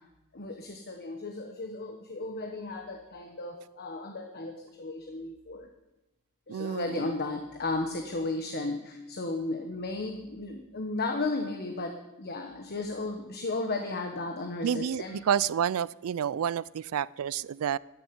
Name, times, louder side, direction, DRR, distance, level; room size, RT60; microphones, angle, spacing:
voice 1, 0.3-5.7 6.5-15.2, left 2 dB, 45° left, 4 dB, 1.2 m, -34 dB
voice 2, 6.5-7.0 14.6-17.8, right 8 dB, 70° right, 21 dB, 0.4 m, -29 dB
14.0 x 7.2 x 9.5 m, 0.99 s
head